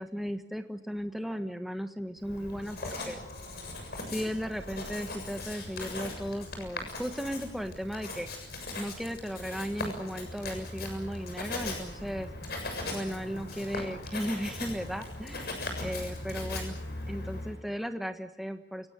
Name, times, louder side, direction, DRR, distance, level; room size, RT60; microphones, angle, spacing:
voice 1, 0.0-3.2 4.1-8.3 8.8-12.3 12.9-16.8 17.1-18.9, equal, ahead, 6 dB, 1.3 m, -36 dB
Writing, 2.2-17.6, left 2 dB, 55° left, 7.0 m, -39 dB
29.0 x 18.5 x 9.0 m, 0.79 s
head